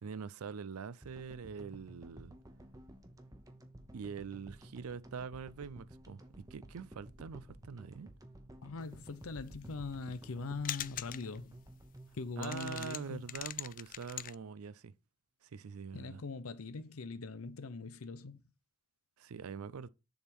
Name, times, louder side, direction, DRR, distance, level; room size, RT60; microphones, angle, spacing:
voice 1, 0.0-2.4 3.9-8.1 12.4-14.9 15.4-16.2 19.2-19.9, right 6 dB, 85° right, 0.5 m, -44 dB
sound 1, 1.0-13.3, right 1 dB, 15° right, 1.0 m, -54 dB
voice 2, 8.6-11.6 12.1-13.4 15.9-18.4, left 3 dB, 75° left, 0.7 m, -42 dB
sound 2, 9.5-10.4 10.6-11.4 11.7-11.8 12.1-12.2 12.4-14.3, left 13 dB, 40° left, 0.3 m, -42 dB
7.0 x 3.7 x 6.0 m
head